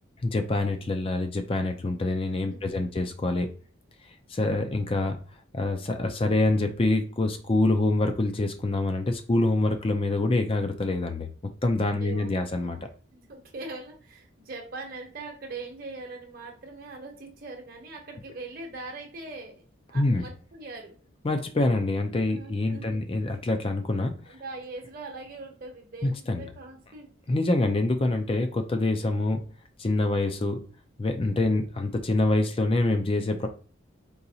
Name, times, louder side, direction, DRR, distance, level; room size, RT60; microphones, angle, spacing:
voice 1, 0.2-3.5 4.3-5.2 5.5-11.3 11.6-12.8 19.9-20.2 21.2-24.1 26.0-26.4 27.3-29.4 29.8-30.6 31.0-33.5, left 2 dB, 25° left, 7 dB, 0.4 m, -25 dB
voice 2, 2.5-2.9 11.9-12.5 12.7-12.8 13.1-19.6 19.9-21.0 22.3-23.0 24.2-27.1, right 3 dB, 45° right, 1 dB, 0.9 m, -41 dB
3.9 x 2.9 x 2.7 m, 0.39 s
head